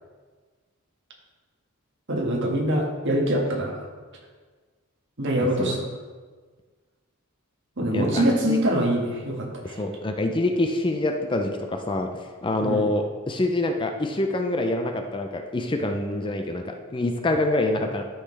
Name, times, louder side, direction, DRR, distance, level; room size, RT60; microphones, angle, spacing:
voice 1, 2.1-3.8 5.2-5.9 7.8-9.8 12.6-12.9, right 1 dB, 55° right, 0 dB, 1.6 m, -24 dB
voice 2, 5.4-5.7 7.9-8.6 9.8-18.0, left 2 dB, 20° left, 4 dB, 0.5 m, -26 dB
12.0 x 5.7 x 3.3 m, 1.4 s
head